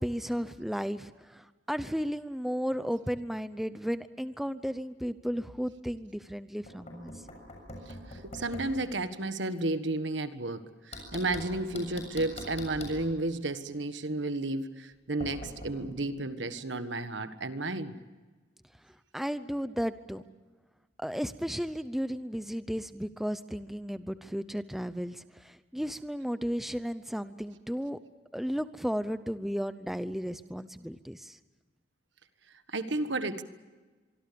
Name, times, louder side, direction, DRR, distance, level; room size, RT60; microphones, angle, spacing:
voice 1, 0.0-7.1 19.1-20.2 21.0-28.0 28.3-31.4, equal, ahead, 12 dB, 0.7 m, -34 dB
Knock, 6.7-8.8 10.9-13.0 15.2-15.7, left 1 dB, 35° left, 7.0 m, -43 dB
voice 2, 7.9-18.0 32.7-33.4, right 2 dB, 70° right, 10 dB, 1.5 m, -32 dB
25.0 x 24.0 x 6.9 m, 1.3 s
head